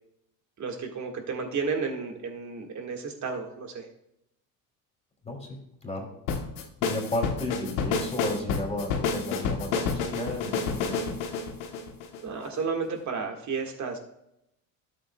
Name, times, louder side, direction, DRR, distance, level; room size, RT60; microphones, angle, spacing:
voice 1, 0.6-3.9 12.2-14.0, right 5 dB, 40° right, 3 dB, 1.9 m, -32 dB
voice 2, 5.2-6.1 6.8-11.2, left 1 dB, 15° left, 0 dB, 3.1 m, -33 dB
sound 1, 6.3-12.6, left 5 dB, 80° left, 1.3 m, -29 dB
12.5 x 7.9 x 2.4 m, 0.81 s
hypercardioid pair, 80°, 42 cm